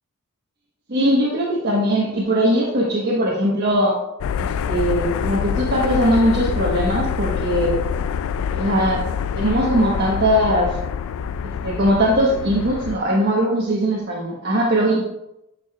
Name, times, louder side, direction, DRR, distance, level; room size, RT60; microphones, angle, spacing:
voice 1, 0.9-4.0 4.4-7.7 8.5-9.0 9.3-10.8 11.4-15.0, equal, 50° right, -4 dB, 1.2 m, -20 dB
sound 1, 4.2-13.0, left 7 dB, 65° left, 0.3 m, -26 dB
9.2 x 6.5 x 2.4 m, 0.86 s
head